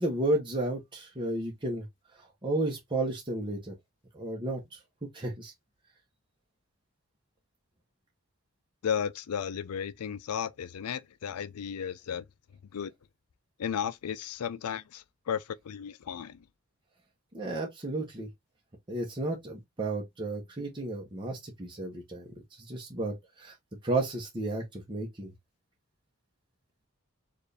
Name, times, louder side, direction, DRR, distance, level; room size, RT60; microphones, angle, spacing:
voice 1, 0.0-1.8 2.2-3.7 4.1-4.8 5.1-5.5 17.3-18.3 18.9-23.5 23.8-25.3, right 2 dB, 20° right, 0.9 m, -33 dB
voice 2, 8.8-12.3 12.7-12.9 13.6-16.4, left 8 dB, 75° left, 0.4 m, -34 dB
4.4 x 2.6 x 3.3 m
head